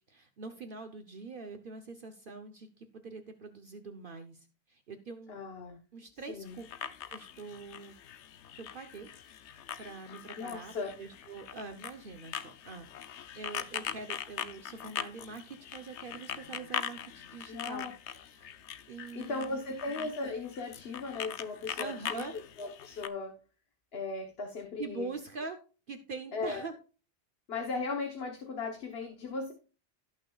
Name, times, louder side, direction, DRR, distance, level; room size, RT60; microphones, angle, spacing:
voice 1, 0.1-5.4 5.9-6.7 7.1-7.9 8.6-9.1 9.8-10.7 11.0-17.9 18.3-18.6 18.9-19.6 21.8-22.3 24.8-25.6 25.9-26.7, right 4 dB, 55° right, 6 dB, 1.0 m, -44 dB
voice 2, 5.3-5.8 6.3-6.6 10.4-11.0 17.5-17.9 19.1-23.3 23.9-25.1 26.3-26.7 27.5-29.5, left 3 dB, 60° left, 3 dB, 1.4 m, -37 dB
sound 1, 6.5-23.1, left 9 dB, 90° left, 1.0 m, -42 dB
17.0 x 6.3 x 2.4 m, 0.36 s
omnidirectional pair, 1.1 m